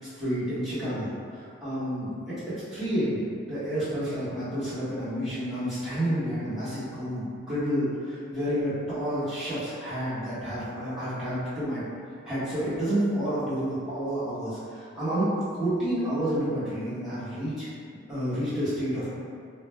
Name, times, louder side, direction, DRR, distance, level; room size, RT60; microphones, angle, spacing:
voice 1, 0.0-11.8 12.2-15.3 15.6-17.7 18.1-19.1, equal, ahead, -16 dB, 1.2 m, -30 dB
2.5 x 2.1 x 3.1 m, 2.2 s
head